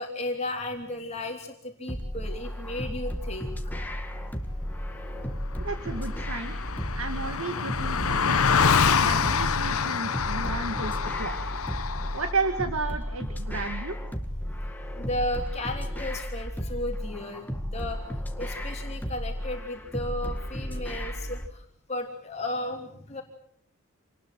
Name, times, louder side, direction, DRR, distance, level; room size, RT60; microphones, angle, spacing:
voice 1, 0.0-3.7 15.0-18.0 18.4-23.2, left 1 dB, 30° left, 2 dB, 3.3 m, -34 dB
sound 1, 1.9-21.5, equal, 10° left, 1.9 m, -34 dB
Car passing by, 5.2-5.3 5.5-12.3, left 6 dB, 80° left, 1.0 m, -26 dB
voice 2, 5.6-6.5 6.9-8.6 9.0-11.4 12.1-14.0, right 3 dB, 75° right, 7 dB, 2.0 m, -33 dB
28.0 x 20.0 x 7.6 m, 0.66 s
head